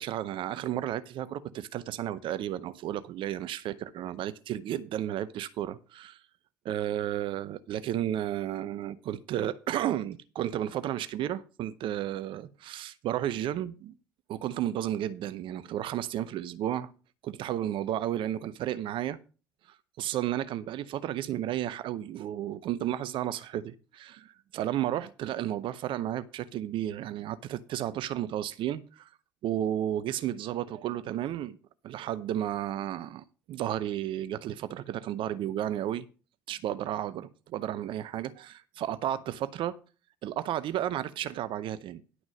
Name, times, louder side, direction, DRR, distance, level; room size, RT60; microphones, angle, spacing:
voice 1, 0.0-6.2 6.7-13.9 14.3-16.9 17.2-19.2 19.7-29.1 29.4-31.6 31.8-36.1 36.5-39.8 40.2-42.0, right 12 dB, 55° right, 0.6 m, -33 dB
11.0 x 6.1 x 5.2 m
figure-of-eight pair, 55°, 10 cm